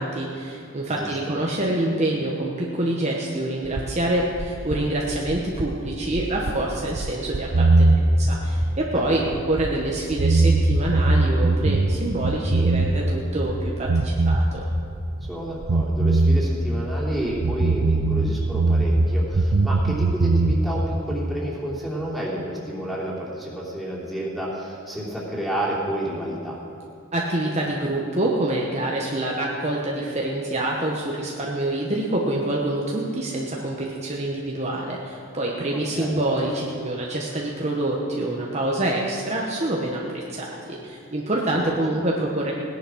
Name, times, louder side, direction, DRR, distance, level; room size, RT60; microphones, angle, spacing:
voice 1, 0.0-14.6 27.1-42.5, right 1 dB, 30° right, -2 dB, 1.2 m, -26 dB
voice 2, 0.9-1.3 8.9-9.3 15.2-26.6 35.7-36.2 41.5-42.0, right 1 dB, ahead, -5 dB, 3.1 m, -30 dB
sound 1, 3.7-9.8 10.1-13.2 13.5-15.3 15.6-19.1 19.3-20.6, right 2 dB, 70° right, 0.7 m, -21 dB
18.0 x 10.5 x 6.3 m, 2.8 s
head